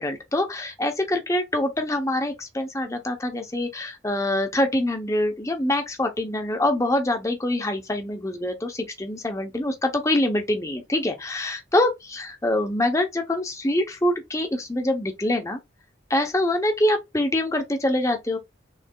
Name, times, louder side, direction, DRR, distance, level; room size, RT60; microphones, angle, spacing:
voice 1, 0.0-15.6 16.1-18.4, left 1 dB, 15° left, 0.7 m, -25 dB
6.3 x 3.2 x 2.3 m
head